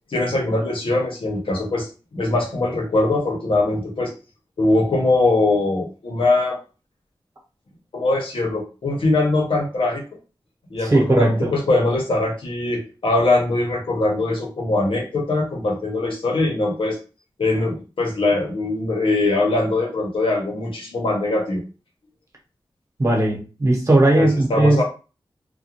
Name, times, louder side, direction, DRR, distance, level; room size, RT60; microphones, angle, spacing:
voice 1, 0.1-4.1 4.6-6.6 7.9-10.0 10.7-17.0 17.4-21.6 24.1-24.8, left 2 dB, 85° left, 0 dB, 0.9 m, -21 dB
voice 2, 10.8-11.5 23.0-24.8, right 2 dB, 35° right, -2 dB, 1.0 m, -18 dB
2.4 x 2.3 x 2.8 m, 0.33 s
wide cardioid pair, 95°, 9 cm